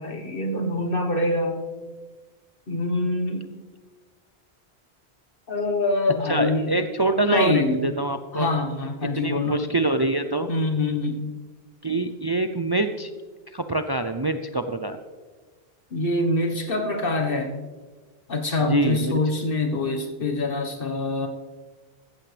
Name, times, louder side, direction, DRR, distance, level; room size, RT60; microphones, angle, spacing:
voice 1, 0.0-1.6 2.7-3.5 5.5-6.7 7.2-7.9 8.3-9.6 10.5-11.3 15.9-17.5 18.3-21.3, left 2 dB, 65° left, 4 dB, 1.5 m, -25 dB
voice 2, 6.3-8.5 9.2-10.5 11.8-13.1 13.5-15.0 18.7-19.2, right 2 dB, 30° right, 8 dB, 0.5 m, -25 dB
15.0 x 14.5 x 3.3 m, 1.4 s
omnidirectional pair, 1.0 m